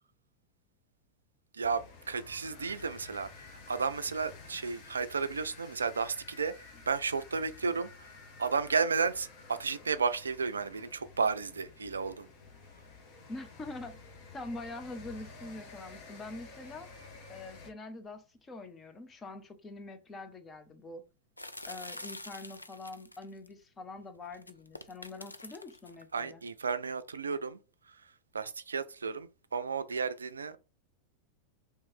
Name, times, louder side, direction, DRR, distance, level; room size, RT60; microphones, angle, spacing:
voice 1, 1.5-6.5 6.9-8.1 8.4-12.3 26.1-27.6 28.3-30.6, right 5 dB, 75° right, 0.3 m, -33 dB
sound 1, 1.6-17.7, left 4 dB, 45° left, 1.0 m, -52 dB
voice 2, 13.3-14.0 14.3-16.9 17.3-21.0 21.7-26.4, left 2 dB, 20° left, 0.7 m, -44 dB
sound 2, 21.4-23.5 24.3-26.0, left 1 dB, 85° left, 0.4 m, -46 dB
3.5 x 3.1 x 4.4 m
figure-of-eight pair, 90°, 0 cm